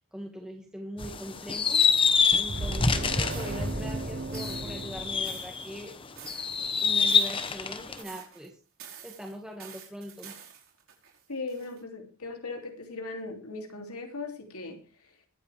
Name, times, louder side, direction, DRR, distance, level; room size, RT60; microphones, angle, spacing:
voice 1, 0.1-5.9 6.8-8.6 9.0-10.4, equal, 5° right, 1.9 m, -41 dB
sound 1, 1.0-5.8 6.3-8.0, left 5 dB, 25° left, 1.1 m, -26 dB
sound 2, 2.5-5.9, right 2 dB, 45° right, 0.7 m, -36 dB
sound 3, 3.3-3.7 4.3-4.8 5.2-6.6 7.0-7.7 8.0-8.5 8.8-11.8, right 8 dB, 70° right, 4.7 m, -48 dB
voice 2, 11.3-15.1, left 3 dB, 90° left, 3.0 m, -38 dB
22.5 x 8.5 x 3.5 m
head